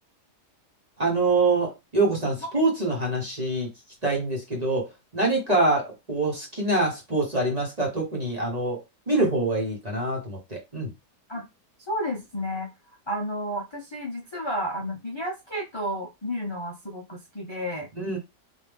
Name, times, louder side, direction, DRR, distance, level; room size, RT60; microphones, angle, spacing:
voice 1, 1.0-3.7 4.0-4.9 5.1-8.8 9.1-10.9 18.0-18.2, right 2 dB, 25° right, 1.1 m, -25 dB
voice 2, 11.9-12.7 13.1-17.9, equal, 25° left, 0.6 m, -31 dB
4.0 x 2.7 x 3.5 m
omnidirectional pair, 1.8 m